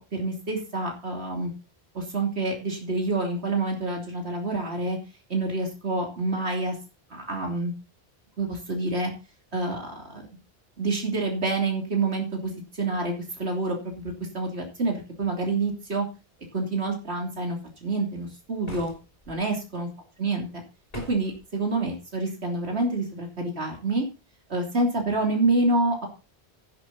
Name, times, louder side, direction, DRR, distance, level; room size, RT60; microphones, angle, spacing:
voice 1, 0.0-1.5 1.9-5.0 5.3-6.7 7.1-7.7 8.4-9.1 9.5-10.2 10.8-13.1 13.4-16.0 16.5-18.9 19.3-19.9 20.2-20.5 21.1-24.0 24.5-26.1, right 2 dB, 75° right, 1 dB, 3.4 m, -27 dB
sound 1, 18.7-19.4 20.9-21.4, left 1 dB, 35° left, 3.7 m, -41 dB
12.0 x 10.5 x 4.2 m, 0.31 s
omnidirectional pair, 1.1 m